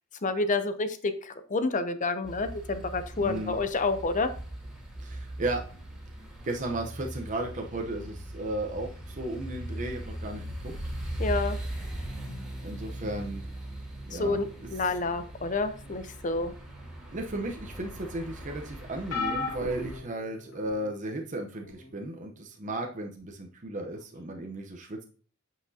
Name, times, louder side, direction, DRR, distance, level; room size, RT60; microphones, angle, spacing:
voice 1, 0.2-4.3 11.2-11.6 14.1-16.5, left 3 dB, 40° left, 11 dB, 0.7 m, -29 dB
sound 1, 2.2-20.0, right 1 dB, 5° right, 2.5 m, -39 dB
voice 2, 3.2-3.6 5.0-5.6 6.4-10.7 11.1-11.2 12.6-13.5 14.1-14.4 17.1-25.0, right 1 dB, 35° right, 2 dB, 0.8 m, -35 dB
sound 2, 19.1-20.9 21.6-21.9 23.2-23.3, left 4 dB, 85° left, 2.6 m, -35 dB
8.6 x 5.9 x 2.8 m, 0.42 s
head